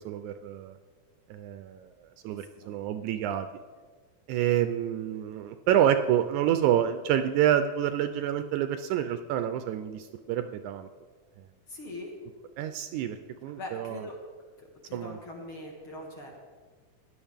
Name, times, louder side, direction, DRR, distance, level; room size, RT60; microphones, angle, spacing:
voice 1, 0.1-0.8 1.3-1.9 2.2-3.5 4.3-10.9 12.6-14.0 14.9-15.2, right 10 dB, 80° right, 9 dB, 1.8 m, -28 dB
voice 2, 2.3-2.8 11.7-12.1 13.6-14.2 14.8-16.3, left 1 dB, 50° left, -1 dB, 2.1 m, -42 dB
16.0 x 10.5 x 3.5 m, 1.5 s
omnidirectional pair, 3.7 m